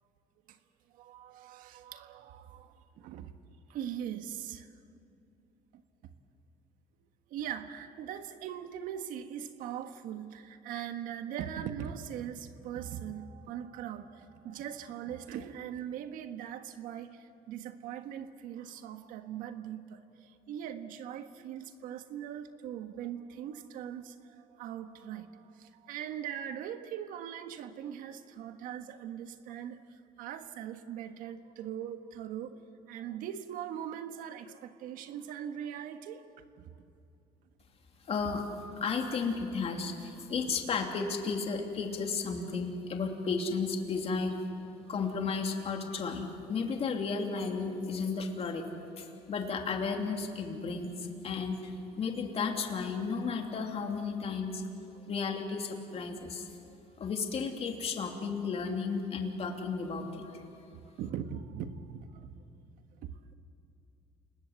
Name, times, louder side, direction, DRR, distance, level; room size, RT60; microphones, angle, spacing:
voice 1, 0.9-3.3 3.7-4.7 5.7-5.8 7.3-36.8 40.2-40.3 44.8-44.9 55.0-55.1 56.6-56.8 60.7-62.3 63.0-63.1, right 9 dB, 80° right, 8 dB, 1.5 m, -41 dB
voice 2, 38.1-38.4 38.8-44.3 44.9-48.6 49.0-54.6 55.1-56.5 57.0-60.4, left 5 dB, 45° left, 3 dB, 3.0 m, -33 dB
29.0 x 20.0 x 8.2 m, 2.6 s
cardioid pair, 105°, 14 cm